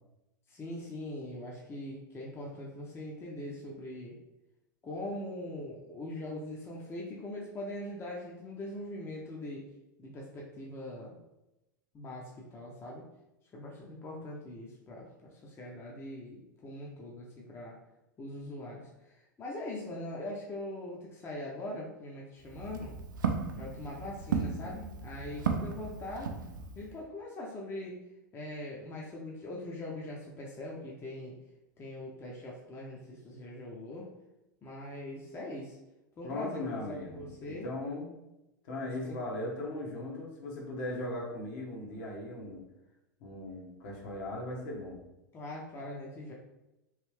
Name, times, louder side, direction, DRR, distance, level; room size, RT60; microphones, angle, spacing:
voice 1, 0.5-4.2 4.8-9.7 10.0-11.2 11.9-13.1 13.5-17.8 18.2-22.9 23.5-26.3 26.7-28.0 28.3-31.4 31.8-34.1 34.6-35.8 36.2-37.7 39.0-39.2 45.3-46.3, left 1 dB, 25° left, -3 dB, 0.6 m, -42 dB
Walk footsteps, 22.4-26.9, right 6 dB, 75° right, 0.4 m, -35 dB
voice 2, 36.2-38.1 38.6-42.6 43.2-45.0, left 1 dB, 55° left, -2 dB, 1.1 m, -38 dB
3.1 x 2.6 x 3.2 m, 0.93 s
hypercardioid pair, 95°, 11 cm